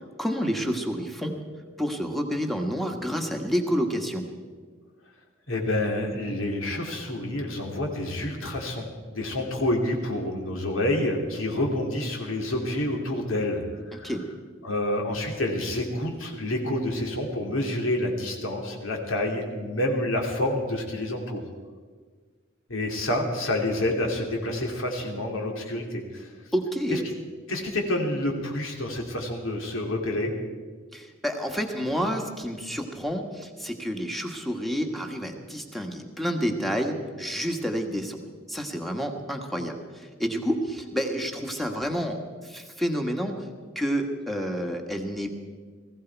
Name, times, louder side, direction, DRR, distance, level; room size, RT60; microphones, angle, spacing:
voice 1, 0.2-1.3 1.8-4.2 13.9-14.2 26.5-27.0 30.9-38.2 38.5-43.4 43.7-45.3, equal, ahead, 3 dB, 1.4 m, -29 dB
voice 2, 5.5-14.1 14.6-21.4 22.7-26.3 26.9-27.0 27.5-30.3, left 1 dB, 75° left, 1 dB, 2.7 m, -28 dB
19.5 x 15.5 x 4.6 m, 1.5 s
head